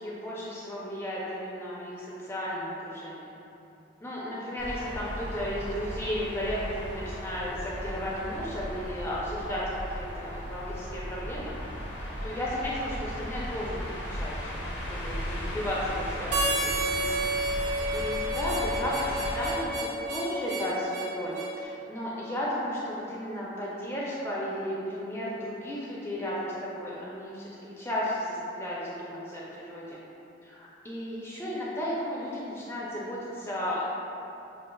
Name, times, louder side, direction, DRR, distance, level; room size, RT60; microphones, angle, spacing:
voice 1, 0.0-3.3 4.0-11.5 12.0-13.7 14.1-17.2 17.9-30.0 30.4-33.9, equal, 15° left, -7 dB, 0.4 m, -34 dB
sound 1, 4.6-19.5, equal, 70° left, 0.7 m, -36 dB
Harmonica, 16.3-21.5, right 1 dB, 40° right, 0.5 m, -30 dB
6.2 x 2.4 x 2.2 m, 2.9 s
head